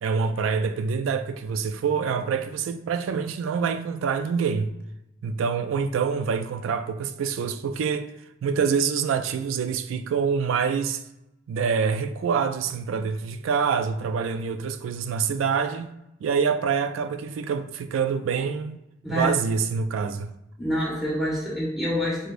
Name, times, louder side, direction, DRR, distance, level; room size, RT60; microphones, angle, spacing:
voice 1, 0.0-4.7 5.2-8.1 8.4-11.0 11.5-15.9 16.2-18.8 19.1-20.3, right 6 dB, 80° right, 0.3 m, -26 dB
voice 2, 19.0-19.4 20.6-22.3, equal, ahead, 1.2 m, -26 dB
4.8 x 2.0 x 2.5 m
head